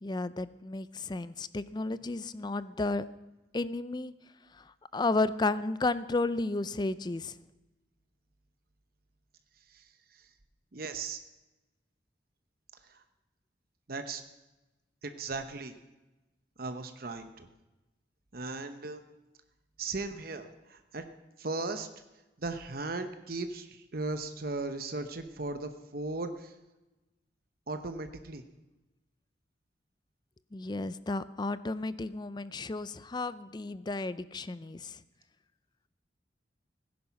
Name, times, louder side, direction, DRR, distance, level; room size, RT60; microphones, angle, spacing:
voice 1, 0.0-3.1 3.5-4.1 4.9-7.3 30.5-35.0, left 2 dB, 25° left, 15 dB, 0.4 m, -32 dB
voice 2, 9.7-10.3 10.7-11.2 12.8-13.0 13.9-14.2 15.0-15.7 16.6-17.5 18.3-19.0 19.8-21.0 21.4-21.9 22.4-26.5 27.7-28.4, right 3 dB, 55° right, 8 dB, 0.9 m, -37 dB
17.0 x 10.5 x 5.8 m, 1.1 s
head